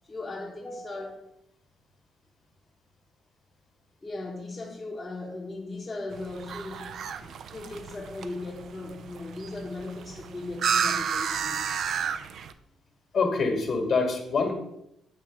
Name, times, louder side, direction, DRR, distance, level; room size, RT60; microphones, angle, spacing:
voice 1, 0.1-1.3 4.0-7.0 7.5-11.7, left 2 dB, 25° left, -3 dB, 1.0 m, -38 dB
sound 1, 6.1-12.5, right 7 dB, 65° right, 0.4 m, -32 dB
voice 2, 13.1-14.5, left 4 dB, 55° left, 3 dB, 1.7 m, -25 dB
7.4 x 2.9 x 5.7 m, 0.80 s
cardioid pair, 90°, 0 cm